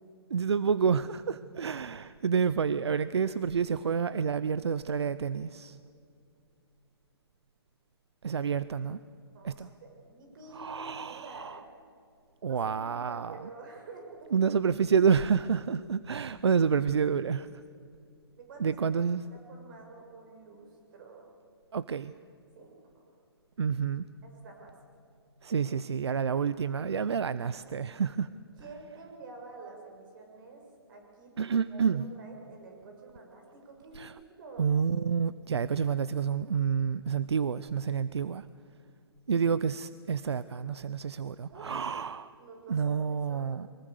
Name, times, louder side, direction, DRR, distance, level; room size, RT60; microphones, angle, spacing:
voice 1, 0.3-5.8 8.2-9.0 9.4-9.7 10.5-11.6 12.4-13.4 14.3-17.5 18.6-19.2 21.7-22.1 23.6-24.0 25.4-28.3 31.4-32.1 33.9-34.1 34.6-38.5 39.3-42.3 42.7-43.7, right 6 dB, 90° right, 15 dB, 0.6 m, -29 dB
voice 2, 9.3-11.6 12.5-14.3 18.4-18.8 19.3-21.3 22.5-23.2 24.2-24.7 28.6-30.6 30.9-34.7 41.5-42.1 42.4-43.6, right 3 dB, 50° right, 2 dB, 6.7 m, -49 dB
23.5 x 20.5 x 6.7 m, 2.4 s
hypercardioid pair, 145°, 14 cm